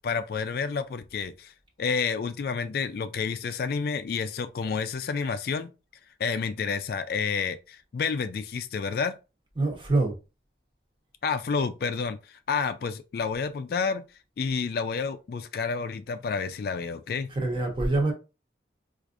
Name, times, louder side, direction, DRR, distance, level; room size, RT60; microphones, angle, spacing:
voice 1, 0.0-1.5 1.8-5.7 6.2-9.2 11.2-14.0 14.4-17.3, left 5 dB, 55° left, 0.3 m, -29 dB
voice 2, 9.5-10.2 17.3-18.1, right 2 dB, 30° right, 1.0 m, -25 dB
4.6 x 2.5 x 2.5 m
head